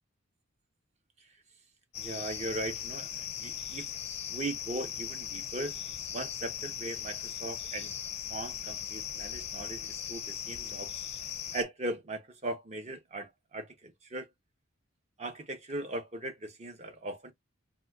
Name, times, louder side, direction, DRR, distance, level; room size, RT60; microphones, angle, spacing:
sound 1, 1.9-11.6, left 9 dB, 35° left, 0.5 m, -39 dB
voice 1, 2.0-3.9 4.3-5.8 6.1-7.9 8.3-10.9 11.5-14.3 15.2-17.3, right 2 dB, 35° right, 0.8 m, -39 dB
4.0 x 2.3 x 2.3 m
head